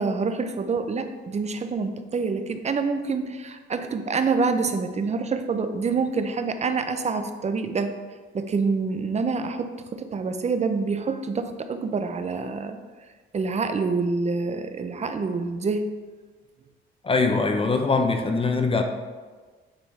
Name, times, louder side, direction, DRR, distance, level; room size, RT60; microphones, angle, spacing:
voice 1, 0.0-8.0 8.3-12.8 13.3-15.9, right 4 dB, 35° right, 8 dB, 0.6 m, -26 dB
voice 2, 17.0-18.8, left 4 dB, 30° left, 5 dB, 0.7 m, -22 dB
8.8 x 3.6 x 4.2 m, 1.4 s
cardioid pair, 90°, 20 cm